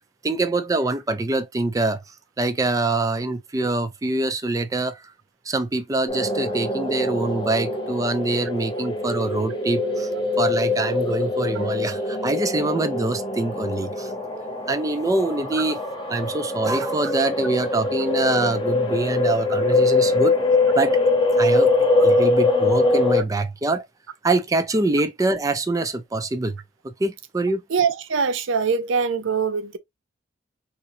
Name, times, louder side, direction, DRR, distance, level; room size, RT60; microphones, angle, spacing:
voice 1, 0.2-2.0 2.4-5.0 5.5-10.1 10.4-14.1 14.7-15.8 16.1-20.4 20.8-21.0 21.4-21.7 22.0-23.9 24.2-26.6 26.8-27.6, right 2 dB, 20° right, 0.4 m, -24 dB
sound 1, 6.1-23.2, left 2 dB, 25° left, 0.9 m, -23 dB
voice 2, 27.7-29.8, right 5 dB, 90° right, 0.5 m, -23 dB
4.2 x 2.6 x 2.6 m
head